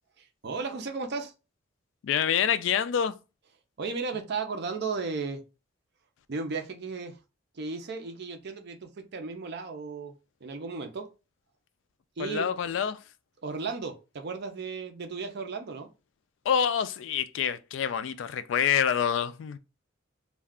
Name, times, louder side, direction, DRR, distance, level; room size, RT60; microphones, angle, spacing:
voice 1, 0.2-1.3 3.8-5.4 6.3-7.2 7.6-10.1 10.4-11.1 12.2-12.5 13.4-15.9, right 4 dB, 55° right, 0.5 m, -35 dB
voice 2, 2.0-3.1 12.2-13.0 16.5-19.6, left 8 dB, 65° left, 0.3 m, -27 dB
2.3 x 2.3 x 3.5 m
head